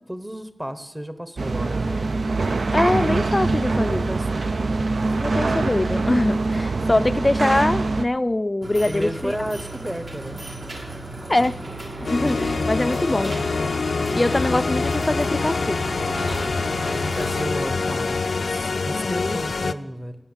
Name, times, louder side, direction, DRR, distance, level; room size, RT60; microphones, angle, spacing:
voice 1, 0.1-2.1 3.7-4.9 6.7-7.2 8.8-10.4 17.0-20.2, equal, 15° right, 0.9 m, -33 dB
sound 1, 1.4-8.1, right 3 dB, 75° right, 0.6 m, -23 dB
voice 2, 2.7-4.1 5.2-9.3 11.3-11.6 12.1-13.3 14.1-15.8 18.9-19.4, left 1 dB, 30° left, 0.4 m, -23 dB
sound 2, 8.6-17.4, right 2 dB, 60° right, 2.3 m, -34 dB
sound 3, 12.0-19.7, left 4 dB, 90° left, 0.4 m, -25 dB
18.0 x 7.2 x 7.2 m
wide cardioid pair, 75°, 0 cm